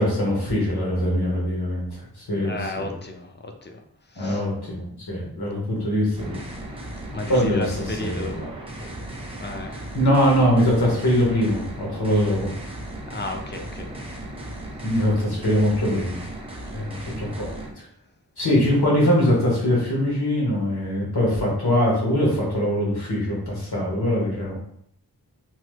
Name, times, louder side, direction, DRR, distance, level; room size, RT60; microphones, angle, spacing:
voice 1, 0.0-2.9 4.1-6.4 7.3-7.6 8.0-8.5 9.9-12.5 14.8-16.1 16.7-17.5 18.4-24.5, equal, 80° left, -4 dB, 1.3 m, -22 dB
voice 2, 2.4-3.8 4.1-4.5 7.1-8.6 9.4-9.9 13.1-14.0 15.9-16.0 16.3-16.5, left 2 dB, 30° left, 4 dB, 0.4 m, -34 dB
sound 1, 6.2-17.7, right 1 dB, 15° right, 0.6 m, -36 dB
3.0 x 2.1 x 3.2 m, 0.68 s
wide cardioid pair, 65°, 38 cm